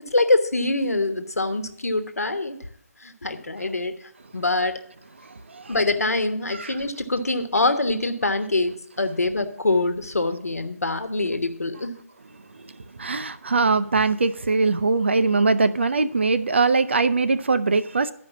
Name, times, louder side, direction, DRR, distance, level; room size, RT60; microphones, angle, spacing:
voice 1, 0.1-2.6 3.0-4.0 4.3-4.8 5.7-11.9, left 2 dB, 70° left, 8 dB, 1.2 m, -24 dB
voice 2, 5.2-5.7 6.5-6.8 12.5-12.7 13.0-18.1, right 4 dB, 45° right, 12 dB, 0.5 m, -22 dB
11.0 x 5.1 x 7.2 m, 0.68 s
figure-of-eight pair, 155°, 9 cm